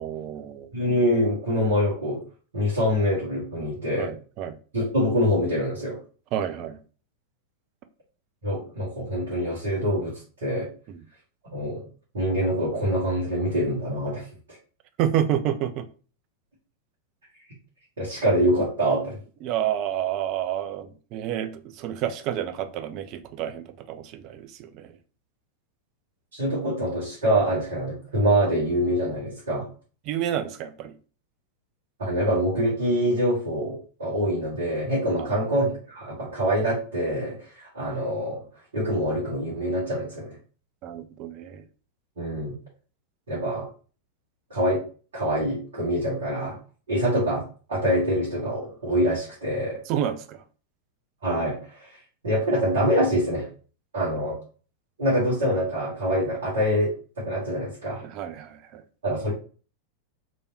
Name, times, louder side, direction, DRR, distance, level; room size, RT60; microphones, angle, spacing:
voice 1, 0.0-0.7 4.0-4.6 6.3-6.8 10.9-11.0 15.0-15.9 19.4-24.9 30.1-30.9 35.2-35.3 40.8-41.6 49.9-50.4 58.0-58.8, right 10 dB, 40° right, 0.5 m, -29 dB
voice 2, 0.7-2.2 2.5-4.1 4.7-6.0 8.4-10.7 11.5-11.8 12.1-14.3 18.0-19.2 26.3-29.7 32.0-38.4 38.7-40.3 42.2-42.6 43.3-43.7 44.5-44.8 45.1-46.6 46.9-49.8 51.2-52.0 52.2-53.5 53.9-54.4 55.0-58.0 59.0-59.3, equal, 65° right, 2.1 m, -25 dB
4.1 x 3.3 x 2.9 m
figure-of-eight pair, 90°, 0 cm